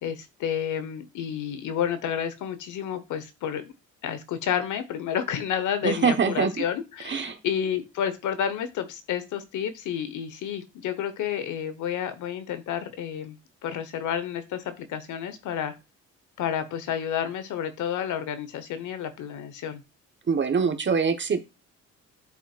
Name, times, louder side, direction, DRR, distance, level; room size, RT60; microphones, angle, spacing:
voice 1, 0.0-3.7 4.0-13.4 13.6-15.7 16.4-19.8, left 9 dB, 80° left, 10 dB, 1.1 m, -30 dB
voice 2, 5.8-6.5 7.0-7.4 20.3-21.4, right 5 dB, 40° right, 7 dB, 1.1 m, -24 dB
11.0 x 4.3 x 2.4 m, 0.27 s
cardioid pair, 90°, 30 cm